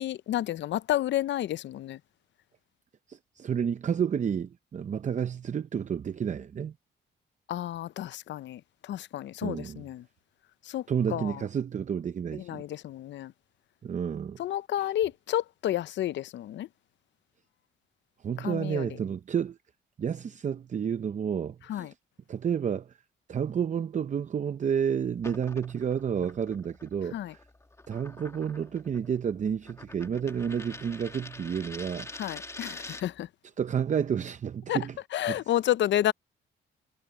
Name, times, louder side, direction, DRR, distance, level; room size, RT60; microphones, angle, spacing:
voice 1, 0.0-2.0 7.5-10.1 10.6-10.9 11.1-11.4 12.4-13.3 14.4-16.7 18.4-18.9 21.7-21.9 27.1-27.3 32.2-33.3 34.7-34.8 35.1-36.1, left 12 dB, 65° left, 0.6 m, -30 dB
voice 2, 3.1-6.7 9.4-9.8 10.9-12.6 13.8-14.4 18.2-19.6 20.0-21.9 22.3-23.0 23.3-27.4 27.9-32.1 33.6-35.0 35.3-35.4, right 7 dB, 40° right, 0.6 m, -30 dB
sound 1, 25.2-33.2, left 2 dB, 15° left, 2.4 m, -46 dB
cardioid pair, 90°, 20 cm